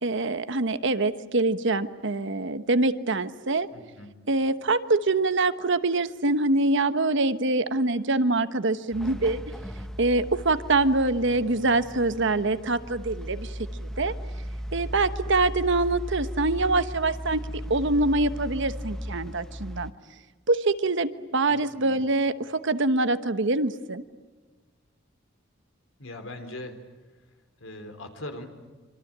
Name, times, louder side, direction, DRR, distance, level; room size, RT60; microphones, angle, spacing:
voice 1, 0.0-3.7 4.3-9.4 10.0-14.1 14.7-17.4 17.7-19.9 20.5-24.0, right 2 dB, 65° right, 11 dB, 1.2 m, -24 dB
voice 2, 3.7-4.1 21.5-22.0 26.0-26.8 27.6-28.5, left 1 dB, 75° left, 7 dB, 3.8 m, -40 dB
sound 1, 8.9-19.9, equal, 5° left, 1.0 m, -37 dB
26.5 x 25.0 x 8.8 m, 1.3 s
head